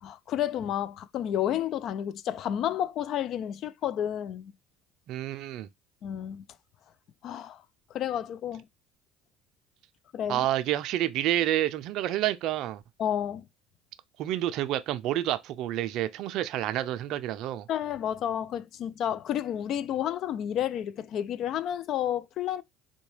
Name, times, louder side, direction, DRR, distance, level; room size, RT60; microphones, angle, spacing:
voice 1, 0.0-4.5 6.0-6.4 7.2-7.6 7.9-8.7 10.1-10.5 13.0-13.4 17.7-22.6, left 10 dB, 55° left, 0.3 m, -31 dB
voice 2, 5.1-5.7 10.3-12.8 14.2-17.7, right 13 dB, 65° right, 0.4 m, -29 dB
3.7 x 2.2 x 3.1 m
hypercardioid pair, 75°, 0 cm